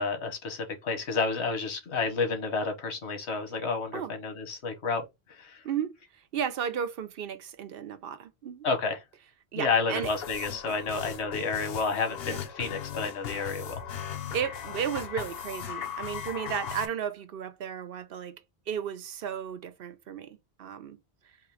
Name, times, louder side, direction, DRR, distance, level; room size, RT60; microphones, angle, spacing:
voice 1, 0.0-5.6 8.6-9.0 9.5-13.8, left 4 dB, 90° left, 1.4 m, -30 dB
voice 2, 6.3-8.6 9.5-10.1 12.3-12.4 14.3-18.4 18.7-21.0, right 8 dB, 65° right, 0.8 m, -34 dB
sound 1, 10.0-16.9, left 8 dB, 70° left, 0.9 m, -38 dB
3.7 x 2.9 x 4.7 m
omnidirectional pair, 1.1 m